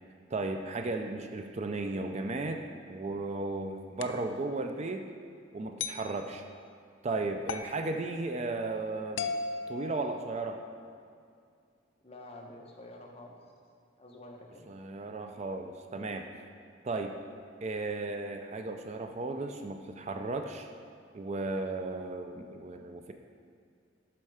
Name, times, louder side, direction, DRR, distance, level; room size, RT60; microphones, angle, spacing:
voice 1, 0.3-2.6 2.9-5.0 5.5-6.4 7.0-9.3 9.7-10.6 14.7-16.2 16.8-17.1 17.6-20.7 21.1-23.1, right 2 dB, 35° right, 5 dB, 0.4 m, -35 dB
sound 1, 4.0-4.3 5.8-6.1 7.5-7.8 9.2-10.6, left 5 dB, 75° left, 0.4 m, -36 dB
voice 2, 12.0-13.4 14.0-14.7, left 1 dB, 30° left, 0 dB, 1.0 m, -48 dB
12.0 x 4.4 x 4.9 m, 2.3 s
head